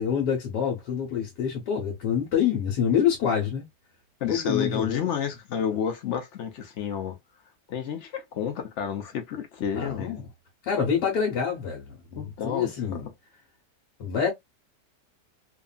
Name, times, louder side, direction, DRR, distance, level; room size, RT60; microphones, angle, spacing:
voice 1, 0.0-3.7 4.3-5.1 9.7-10.3 10.6-13.0 14.0-14.3, left 7 dB, 75° left, 1.5 m, -26 dB
voice 2, 4.2-7.2 7.7-10.2 12.1-13.0, left 8 dB, 60° left, 0.8 m, -30 dB
2.9 x 2.5 x 2.3 m
omnidirectional pair, 1.8 m